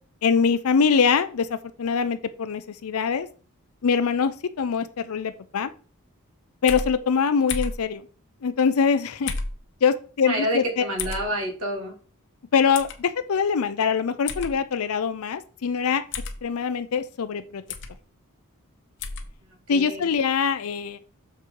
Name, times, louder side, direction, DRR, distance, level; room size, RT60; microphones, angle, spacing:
voice 1, 0.2-3.3 3.8-5.7 6.6-8.0 8.4-9.3 9.8-10.8 12.5-16.0 16.4-17.6 19.7-21.0, left 6 dB, 80° left, 11 dB, 0.5 m, -23 dB
sound 1, 6.7-6.9 7.5-7.8 9.3-9.6 11.0-11.2 12.7-13.0 14.3-14.5 16.1-16.4 17.7-17.9 19.0-19.3, left 4 dB, 55° left, 0.9 m, -30 dB
voice 2, 10.3-11.9 19.7-20.1, equal, 80° right, 2 dB, 2.3 m, -28 dB
6.7 x 4.8 x 4.6 m, 0.39 s
head